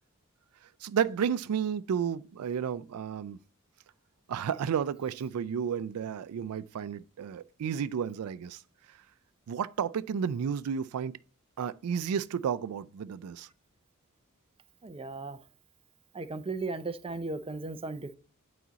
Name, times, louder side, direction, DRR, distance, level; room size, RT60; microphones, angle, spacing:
voice 1, 0.8-3.4 4.3-8.6 8.9-9.0 9.5-11.1 11.6-13.5, right 7 dB, 85° right, 0.4 m, -32 dB
voice 2, 14.8-15.4 16.1-18.1, right 3 dB, 25° right, 0.5 m, -36 dB
8.6 x 4.1 x 4.0 m
head